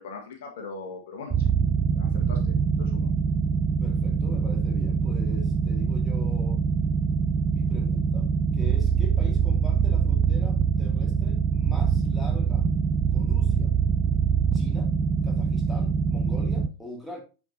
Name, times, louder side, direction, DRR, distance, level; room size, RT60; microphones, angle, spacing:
voice 1, 0.0-1.5 1.9-3.1, left 4 dB, 55° left, 1.6 m, -40 dB
sound 1, 1.3-16.7, right 6 dB, 25° right, 0.4 m, -24 dB
voice 2, 3.8-6.6 7.5-12.7 13.1-13.7 14.5-14.9 15.2-17.2, left 2 dB, ahead, 2.4 m, -42 dB
9.1 x 4.9 x 2.8 m
figure-of-eight pair, 90°, 0 cm